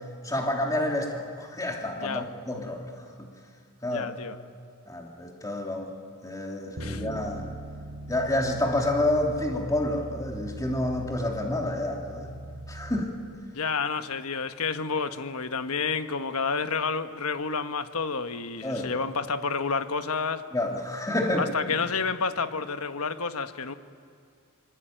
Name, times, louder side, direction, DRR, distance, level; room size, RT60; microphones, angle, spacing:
voice 1, 0.2-2.8 3.2-3.3 3.8-4.1 4.9-5.9 6.2-7.4 8.1-12.3 12.7-13.1 18.6-18.9 20.5-21.5, left 1 dB, 15° left, 3.0 m, -29 dB
voice 2, 3.9-4.4 6.8-7.0 13.5-20.4 21.4-23.7, left 5 dB, 75° left, 1.2 m, -30 dB
Bass guitar, 6.8-13.0, right 1 dB, 70° right, 3.2 m, -40 dB
25.0 x 24.0 x 9.0 m
head